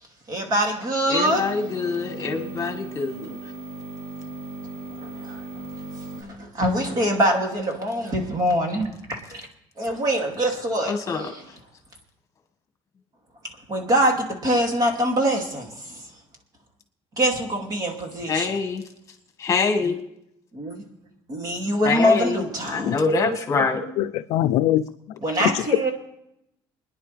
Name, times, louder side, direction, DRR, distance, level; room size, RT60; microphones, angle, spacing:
voice 1, 0.3-1.5 5.0-5.4 6.2-9.4 9.8-11.5 13.7-16.1 17.2-18.6 20.5-20.8 21.3-23.0 25.2-25.9, equal, 35° right, 2.6 m, -24 dB
voice 2, 1.1-3.3 10.9-11.2 18.3-18.8 19.4-20.0 21.9-22.3 22.7-23.8, left 4 dB, 30° left, 1.7 m, -24 dB
sound 1, 1.2-6.2, right 2 dB, 80° right, 7.3 m, -37 dB
voice 3, 22.9-23.4 24.0-24.9 25.4-25.6, left 13 dB, 80° left, 0.5 m, -23 dB
27.0 x 10.5 x 3.4 m
cardioid pair, 145°, 11 cm